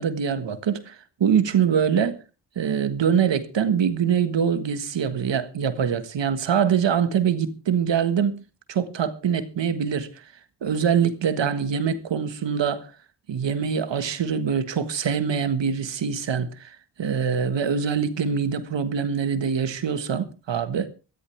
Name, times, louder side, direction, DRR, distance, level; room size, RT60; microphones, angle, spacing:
voice 1, 0.0-2.2 2.5-8.4 8.7-10.2 10.6-12.9 13.3-20.9, right 7 dB, 85° right, 1.6 m, -24 dB
19.0 x 14.0 x 3.4 m
cardioid pair, 70°, 43 cm